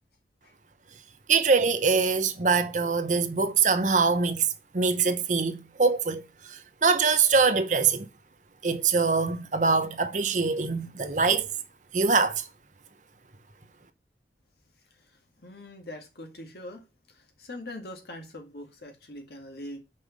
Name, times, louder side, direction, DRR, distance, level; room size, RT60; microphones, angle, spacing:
voice 1, 1.3-4.5 4.7-6.2 6.5-8.1 8.6-11.5 11.9-12.4, right 4 dB, 45° right, 0.8 m, -23 dB
voice 2, 15.4-16.8 17.1-19.8, left 1 dB, 65° left, 2.0 m, -42 dB
5.6 x 5.0 x 6.5 m
head